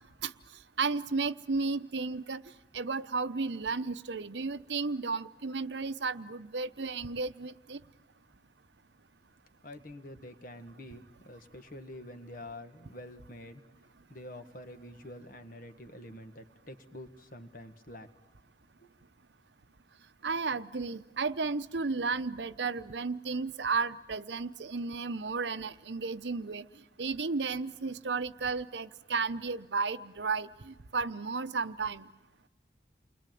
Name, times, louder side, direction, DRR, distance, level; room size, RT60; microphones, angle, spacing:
voice 1, 0.8-2.4 2.7-7.8 20.2-26.6 27.0-32.1, right 4 dB, 85° right, 12 dB, 0.9 m, -33 dB
voice 2, 9.6-13.6 14.1-18.1 18.8-18.9, left 1 dB, 50° left, 8 dB, 1.7 m, -47 dB
29.5 x 21.5 x 9.3 m, 1.1 s
head